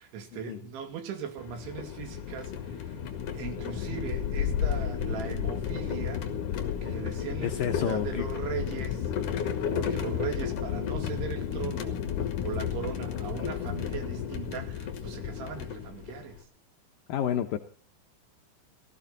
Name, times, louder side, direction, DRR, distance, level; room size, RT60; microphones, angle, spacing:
voice 1, 0.0-3.0 3.3-6.3 6.8-9.1 9.7-12.0 12.4-16.4, right 7 dB, 75° right, 4.7 m, -39 dB
sound 1, 1.4-16.4, left 8 dB, 55° left, 2.8 m, -32 dB
voice 2, 7.4-8.3 9.9-10.0 17.1-17.6, left 9 dB, 80° left, 2.0 m, -30 dB
18.0 x 15.5 x 3.9 m
omnidirectional pair, 5.4 m